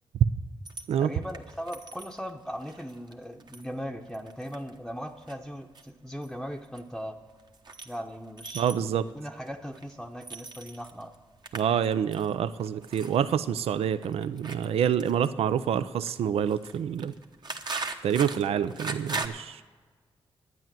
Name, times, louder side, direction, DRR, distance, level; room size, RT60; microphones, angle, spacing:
sound 1, 0.7-19.3, right 3 dB, 45° right, 1.2 m, -42 dB
voice 1, 1.0-7.2 7.8-8.8 9.1-11.2, equal, 5° left, 3 dB, 0.8 m, -38 dB
voice 2, 8.5-9.1 11.5-17.1 18.0-19.6, right 8 dB, 80° right, 13 dB, 0.5 m, -27 dB
10.5 x 9.2 x 7.5 m, 1.4 s
cardioid pair, 60°, 10 cm